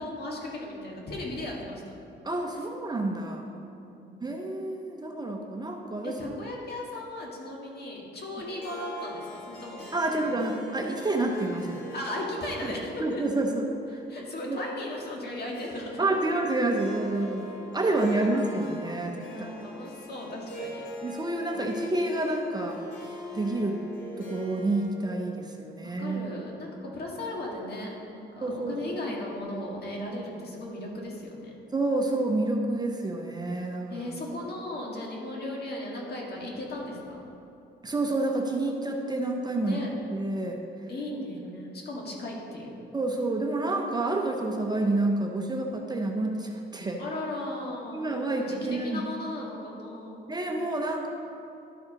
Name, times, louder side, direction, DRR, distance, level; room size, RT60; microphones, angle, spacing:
voice 1, 0.0-1.8 3.8-4.5 6.0-10.3 11.9-13.2 14.1-16.1 19.3-20.8 25.8-31.5 33.9-37.3 39.6-39.9 40.9-42.8 47.0-50.3, left 1 dB, 55° left, -2 dB, 1.9 m, -37 dB
voice 2, 2.2-3.5 4.2-6.2 9.9-11.8 13.0-13.6 13.9-14.0 14.5-14.6 16.0-19.7 21.0-22.8 23.3-23.8 24.2-26.4 28.4-29.2 31.7-34.1 37.8-39.8 40.1-40.6 42.9-47.0 47.9-49.0 50.3-51.1, right 2 dB, 20° right, 2 dB, 0.8 m, -29 dB
Harp, 8.4-24.8, left 1 dB, 80° left, 2.2 m, -43 dB
12.0 x 4.7 x 5.0 m, 2.7 s
cardioid pair, 90°, 20 cm